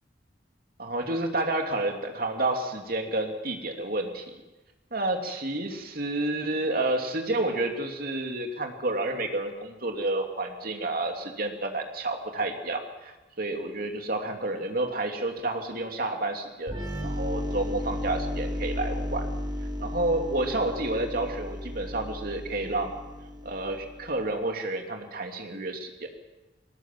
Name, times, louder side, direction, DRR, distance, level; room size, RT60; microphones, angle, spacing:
voice 1, 0.8-4.2 4.9-16.8 17.0-19.2 19.8-22.9 23.4-26.1, right 2 dB, 50° right, 4 dB, 2.9 m, -30 dB
sound 1, 16.7-24.2, left 1 dB, 25° right, 3.6 m, -34 dB
21.0 x 18.5 x 7.6 m, 1.1 s
head